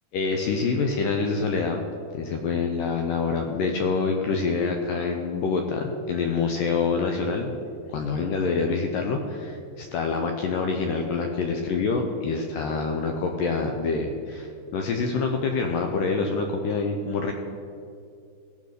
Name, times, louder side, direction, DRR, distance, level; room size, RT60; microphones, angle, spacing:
voice 1, 0.1-1.8 2.1-7.5 7.9-17.3, left 4 dB, 80° left, 3 dB, 1.9 m, -26 dB
15.5 x 6.1 x 6.6 m, 2.4 s
omnidirectional pair, 4.8 m